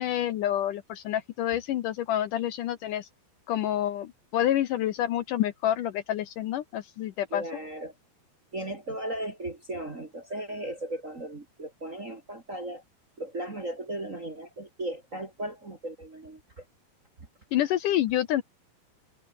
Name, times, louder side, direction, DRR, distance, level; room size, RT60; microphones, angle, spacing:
voice 1, 0.0-3.1 3.5-7.4 17.5-18.4, left 12 dB, 70° left, 2.3 m, -28 dB
voice 2, 7.3-7.9 8.5-12.8 13.2-16.6, right 1 dB, 25° right, 1.9 m, -36 dB
omnidirectional pair, 4.4 m